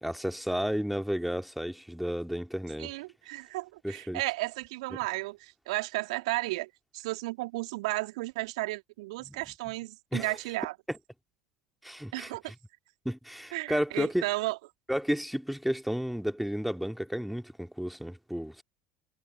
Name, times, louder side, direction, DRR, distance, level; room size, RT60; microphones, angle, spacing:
voice 1, 0.0-3.0 3.8-4.2 9.2-9.4 10.1-10.4 10.9-11.0 11.8-12.5 13.0-14.2 14.9-18.6, equal, ahead, 2.6 m, -32 dB
voice 2, 2.8-10.7 12.1-12.4 13.5-14.6, right 21 dB, 65° right, 2.4 m, -34 dB
figure-of-eight pair, 70°, 4 cm